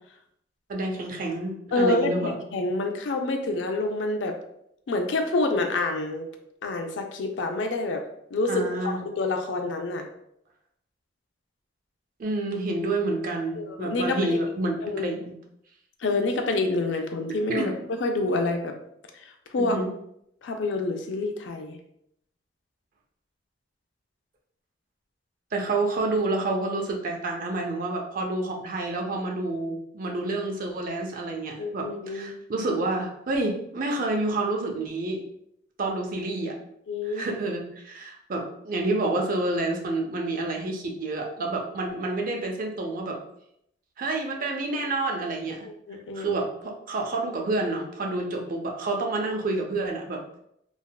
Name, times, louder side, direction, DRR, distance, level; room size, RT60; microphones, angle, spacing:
voice 1, 0.7-2.3 8.5-9.0 12.2-15.3 17.5-17.7 19.6-19.9 25.5-35.2 35.8-36.6 37.0-43.2 44.0-45.7 46.1-50.4, right 2 dB, 50° right, 2 dB, 0.5 m, -29 dB
voice 2, 1.7-4.3 4.9-6.2 6.6-8.0 8.3-10.1 13.6-14.4 14.8-15.1 16.0-17.7 18.0-18.7 19.5-19.8 20.4-21.8 31.6-32.3 36.9-37.4 45.9-46.4, left 2 dB, 85° left, 5 dB, 0.4 m, -27 dB
3.4 x 2.1 x 2.3 m, 0.74 s
head